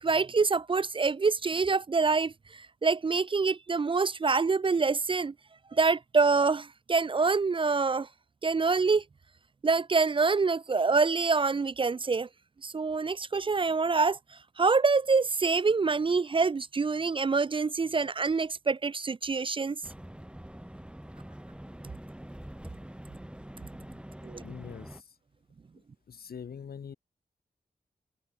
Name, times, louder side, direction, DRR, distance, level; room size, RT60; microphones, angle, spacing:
voice 1, 0.0-5.3 5.7-8.1 8.4-9.0 9.6-12.3 12.6-14.2 14.6-19.8 24.2-24.4, right 4 dB, 35° right, 0.4 m, -26 dB
sound 1, 19.8-25.0, right 1 dB, 5° right, 1.4 m, -45 dB
voice 2, 24.4-25.1 26.1-27.0, left 7 dB, 75° left, 1.4 m, -43 dB
cardioid pair, 45°, 16 cm